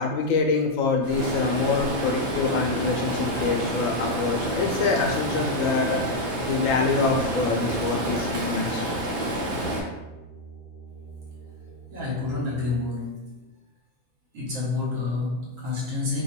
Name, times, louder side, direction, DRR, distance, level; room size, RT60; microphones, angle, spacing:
voice 1, 0.0-8.9, left 4 dB, 80° left, 1 dB, 1.0 m, -25 dB
Stream, 1.0-9.8, right 1 dB, 60° right, 1.0 m, -28 dB
sound 1, 2.1-12.7, right 2 dB, 55° left, 1.0 m, -45 dB
voice 2, 11.6-13.3 14.3-16.2, left 3 dB, 75° right, -5 dB, 1.4 m, -29 dB
2.9 x 2.3 x 4.2 m, 0.99 s
omnidirectional pair, 1.4 m